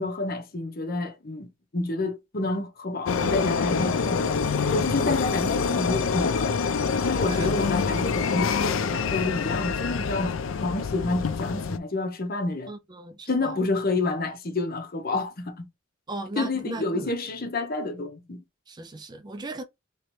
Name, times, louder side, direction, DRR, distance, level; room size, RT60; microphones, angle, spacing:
voice 1, 0.0-4.3 4.7-6.7 7.0-12.7 13.3-15.7 16.4-18.4, left 2 dB, 50° left, 0.8 m, -29 dB
sound 1, 3.1-11.8, left 5 dB, 75° left, 0.4 m, -26 dB
voice 2, 12.7-13.5 16.1-17.1 18.7-19.6, right 2 dB, 20° right, 0.4 m, -37 dB
3.1 x 2.9 x 3.0 m
head